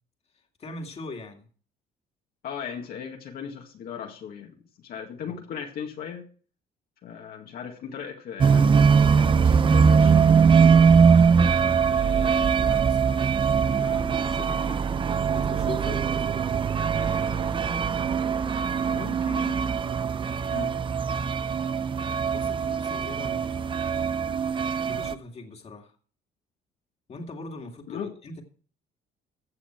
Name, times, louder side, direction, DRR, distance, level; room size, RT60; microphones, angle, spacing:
voice 1, 0.3-1.5 5.2-5.4 11.8-14.8 15.3-16.3 16.9-17.9 18.9-19.6 22.3-24.0 24.9-26.0 27.1-28.4, left 3 dB, 40° left, 3 dB, 2.4 m, -41 dB
voice 2, 2.4-6.3 7.0-10.5 20.5-20.8 27.9-28.1, left 7 dB, 65° left, 1 dB, 2.0 m, -37 dB
sound 1, 8.4-25.1, right 6 dB, 30° right, 0.6 m, -21 dB
15.5 x 8.0 x 4.6 m, 0.42 s
cardioid pair, 110°, 17 cm